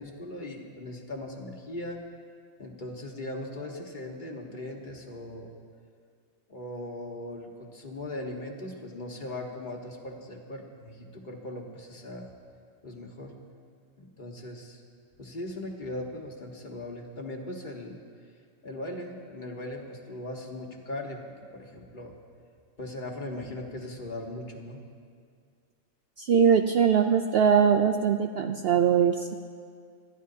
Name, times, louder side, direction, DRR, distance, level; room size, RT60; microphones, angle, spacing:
voice 1, 0.0-2.0 2.6-5.5 6.5-12.3 12.8-13.3 14.0-14.8 15.2-18.0 18.6-21.2 21.5-22.1 22.8-24.8, left 1 dB, 35° left, 0 dB, 1.5 m, -39 dB
voice 2, 26.2-29.4, right 7 dB, 60° right, 6 dB, 0.7 m, -22 dB
26.5 x 13.5 x 2.8 m, 2.2 s
omnidirectional pair, 1.4 m